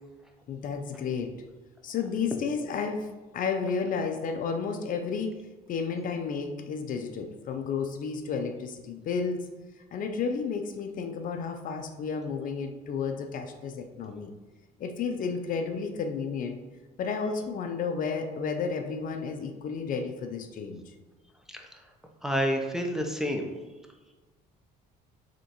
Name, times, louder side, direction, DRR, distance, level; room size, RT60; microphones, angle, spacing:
voice 1, 0.5-1.4 1.8-5.4 5.7-9.4 9.9-14.3 14.8-16.6 17.0-20.8, left 5 dB, 55° left, 6 dB, 0.5 m, -32 dB
voice 2, 22.2-23.5, equal, 5° right, 2 dB, 0.5 m, -29 dB
5.0 x 3.6 x 2.9 m, 1.2 s
cardioid pair, 110°, 17 cm